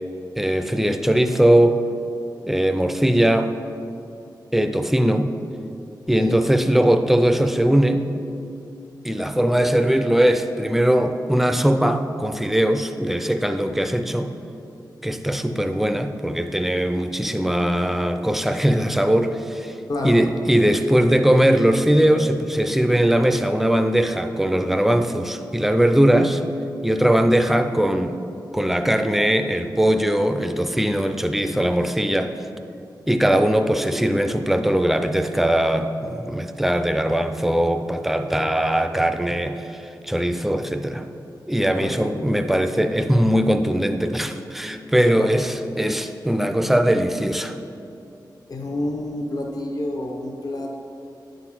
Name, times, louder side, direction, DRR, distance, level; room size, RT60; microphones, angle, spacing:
voice 1, 0.4-1.8 2.5-3.5 4.5-5.3 6.1-8.0 9.0-14.3 15.0-19.7 20.0-26.4 26.8-28.2 28.5-32.4 33.1-41.1 41.5-47.5, right 1 dB, 5° right, 7 dB, 0.4 m, -20 dB
voice 2, 6.2-6.5 19.9-20.2 41.7-42.3 45.2-45.3 48.5-50.8, left 1 dB, 55° left, 1 dB, 0.8 m, -29 dB
9.6 x 3.9 x 6.0 m, 2.7 s
wide cardioid pair, 120°, 8 cm